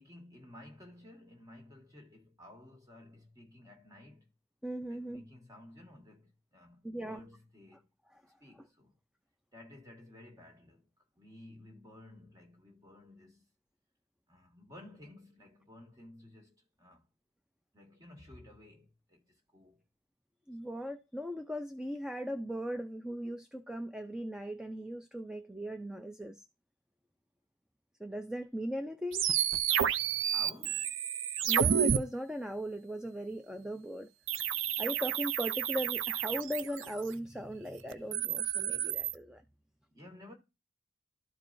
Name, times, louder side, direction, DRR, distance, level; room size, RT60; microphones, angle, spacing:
voice 1, 0.0-4.3 4.9-7.9 8.4-8.9 9.5-10.9 11.2-13.5 14.3-17.1 17.7-19.8 30.3-31.0 39.9-40.3, left 1 dB, 20° right, 1.7 m, -54 dB
voice 2, 4.6-5.2 6.8-7.2 8.1-8.2 20.5-26.4 28.0-29.3 31.5-34.1 34.8-39.4, equal, 5° right, 0.4 m, -38 dB
sound 1, 29.1-32.0 34.3-37.1 37.9-39.1, right 8 dB, 80° right, 0.5 m, -30 dB
13.0 x 4.6 x 2.6 m
head